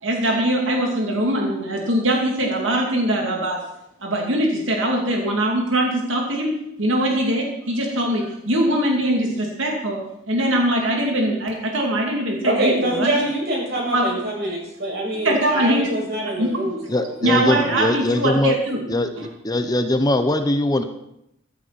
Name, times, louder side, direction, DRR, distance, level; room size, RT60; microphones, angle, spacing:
voice 1, 0.0-3.6 4.0-10.0 10.3-13.1 13.9-14.1 15.2-15.9 16.4-16.5 17.2-18.8 19.2-19.3, right 1 dB, 90° right, 0 dB, 2.7 m, -22 dB
voice 2, 12.4-17.1 17.6-17.7, right 1 dB, 55° right, -2 dB, 6.4 m, -25 dB
voice 3, 16.9-18.5 18.9-19.1 19.4-20.8, left 1 dB, 20° left, 8 dB, 0.9 m, -21 dB
15.0 x 13.5 x 4.2 m, 0.81 s
head